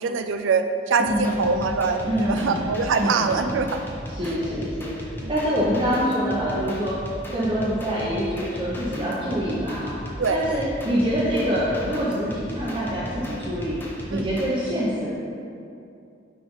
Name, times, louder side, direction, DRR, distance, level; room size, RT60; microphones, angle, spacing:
voice 1, 0.0-3.8 5.2-5.3 10.2-10.6 14.1-14.3, right 4 dB, 85° right, 7 dB, 0.4 m, -24 dB
voice 2, 1.0-1.6 2.0-2.7 3.0-3.5 4.1-4.9 5.3-7.0 7.3-13.8 14.1-15.1, equal, 25° right, -9 dB, 0.9 m, -25 dB
sound 1, 1.1-14.5, equal, 10° left, 0.7 m, -37 dB
9.6 x 3.4 x 3.9 m, 2.6 s
head